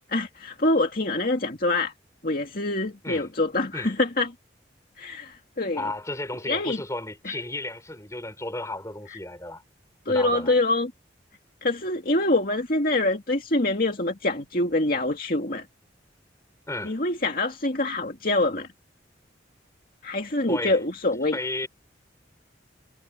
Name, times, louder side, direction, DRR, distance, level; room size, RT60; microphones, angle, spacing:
voice 1, 0.1-1.9 2.2-4.3 5.0-5.8 6.5-6.8 7.2-7.4 10.1-10.9 11.6-15.7 16.8-18.7 20.0-21.4, left 2 dB, 50° left, 2.3 m, -25 dB
voice 2, 5.7-9.6 10.1-10.5 16.7-17.0 20.5-20.8 21.3-21.7, left 2 dB, 15° left, 5.8 m, -33 dB
head